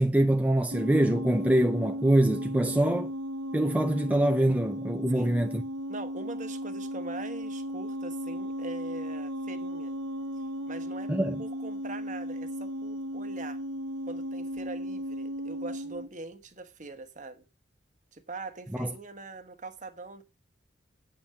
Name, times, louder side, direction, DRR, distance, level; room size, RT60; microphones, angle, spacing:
voice 1, 0.0-3.1 3.5-5.6 11.1-11.4 18.8-18.9, right 1 dB, 10° right, 0.5 m, -24 dB
sound 1, 0.7-16.1, equal, 70° right, 1.1 m, -35 dB
voice 2, 5.9-10.0 10.7-11.1 11.4-13.6 14.0-17.4 18.1-20.2, right 3 dB, 40° right, 1.2 m, -42 dB
8.8 x 5.6 x 7.6 m
head